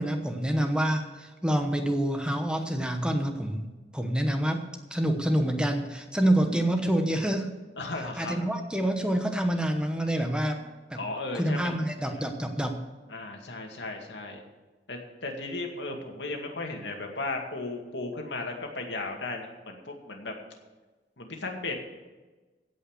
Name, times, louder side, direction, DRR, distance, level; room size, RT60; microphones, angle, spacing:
voice 1, 0.0-4.6 4.9-7.5 8.2-10.6 10.9-11.0 11.4-12.8, right 1 dB, 5° right, 5 dB, 1.0 m, -27 dB
voice 2, 6.4-6.7 7.8-8.4 11.0-11.8 13.1-14.4 14.9-20.3 21.2-21.7, left 2 dB, 85° left, 2 dB, 2.2 m, -35 dB
16.5 x 5.5 x 8.0 m, 1.2 s
head